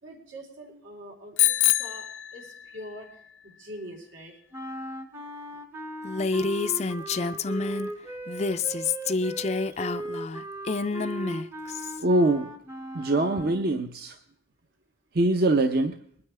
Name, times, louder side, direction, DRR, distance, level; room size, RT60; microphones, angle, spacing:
voice 1, 0.0-3.1 3.4-4.4 9.7-9.9, equal, 90° right, -2 dB, 3.9 m, -44 dB
Bicycle bell, 1.4-2.9, left 16 dB, 90° left, 0.6 m, -25 dB
sound 1, 4.5-13.7, right 1 dB, 15° right, 0.7 m, -38 dB
Female speech woman speaking, 6.0-7.9 8.3-12.0, left 4 dB, 35° left, 0.4 m, -28 dB
voice 2, 12.0-12.5 12.9-14.2 15.1-16.0, right 2 dB, 50° right, 6 dB, 0.7 m, -23 dB
21.5 x 9.7 x 3.4 m, 0.64 s
head